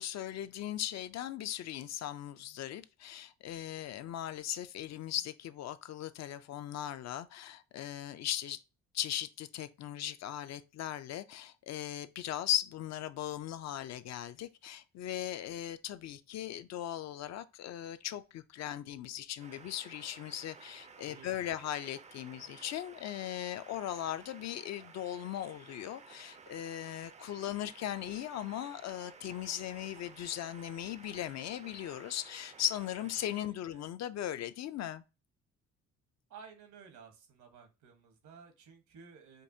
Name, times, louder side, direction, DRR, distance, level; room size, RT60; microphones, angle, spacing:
voice 1, 0.0-8.6 8.9-35.0, left 12 dB, 60° left, 0.4 m, -38 dB
sound 1, 19.4-33.5, right 5 dB, 25° right, 0.4 m, -55 dB
voice 2, 21.1-21.6 33.3-33.9 36.3-39.4, right 6 dB, 75° right, 1.1 m, -55 dB
5.2 x 2.3 x 2.7 m
cardioid pair, 90°, 30 cm